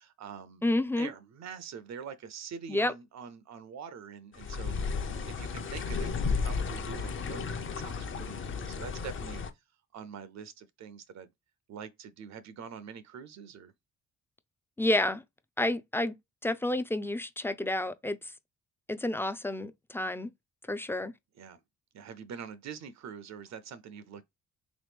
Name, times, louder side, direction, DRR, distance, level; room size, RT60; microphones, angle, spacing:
voice 1, 0.0-0.6 1.0-9.4 9.9-11.3 11.7-13.7 21.4-21.6 21.9-24.2, right 7 dB, 65° right, 0.6 m, -45 dB
voice 2, 0.6-1.1 2.7-2.9 14.8-15.2 15.6-16.2 16.4-18.3 18.9-20.3 20.7-21.1, left 1 dB, 10° left, 0.4 m, -30 dB
sound 1, 4.3-9.5, left 5 dB, 40° left, 0.7 m, -33 dB
3.5 x 3.1 x 3.4 m
cardioid pair, 90°, 30 cm